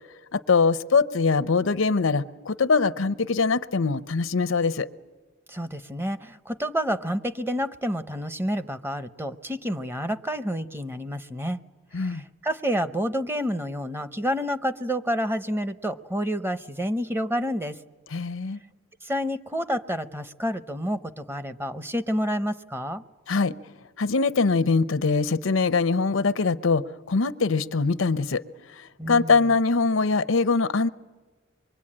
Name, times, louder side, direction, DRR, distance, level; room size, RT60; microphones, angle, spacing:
voice 1, 0.3-4.9 11.9-12.2 18.1-18.6 23.3-23.5 24.0-28.4 29.1-30.9, left 4 dB, 85° left, 12 dB, 0.7 m, -22 dB
voice 2, 5.5-11.6 12.0-17.8 19.0-23.0 29.0-29.5, equal, 10° right, 11 dB, 0.7 m, -29 dB
25.5 x 23.0 x 8.7 m, 1.3 s
head